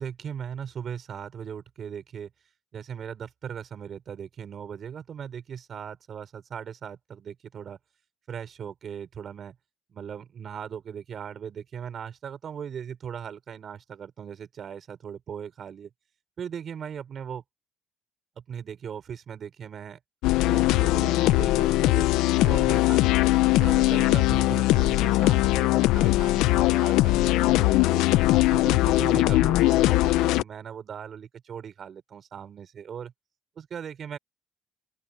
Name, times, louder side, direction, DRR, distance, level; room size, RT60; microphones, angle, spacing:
voice 1, 0.0-2.3 2.7-7.8 8.3-9.6 9.9-15.9 16.4-17.4 18.4-20.0 20.4-23.1 23.6-28.0 28.5-33.1 33.6-34.2, right 8 dB, 45° right, 5.2 m, -38 dB
sound 1, 20.2-30.4, left 18 dB, 90° left, 0.6 m, -21 dB
open air
cardioid pair, 110°, 0 cm